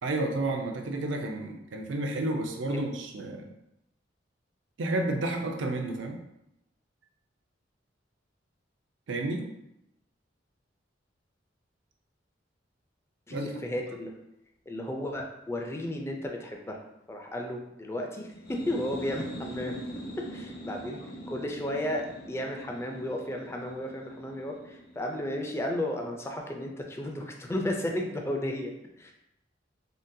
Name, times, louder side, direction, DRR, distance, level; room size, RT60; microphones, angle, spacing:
voice 1, 0.0-3.5 4.8-6.2 9.1-9.4 13.3-13.5, right 2 dB, 80° right, 3 dB, 0.5 m, -31 dB
voice 2, 13.3-14.1 14.7-16.8 17.1-19.8 20.2-29.1, left 1 dB, 15° left, 2 dB, 0.3 m, -34 dB
sound 1, 18.3-25.8, right 1 dB, 60° left, 0.6 m, -43 dB
3.7 x 2.2 x 2.6 m, 0.85 s
head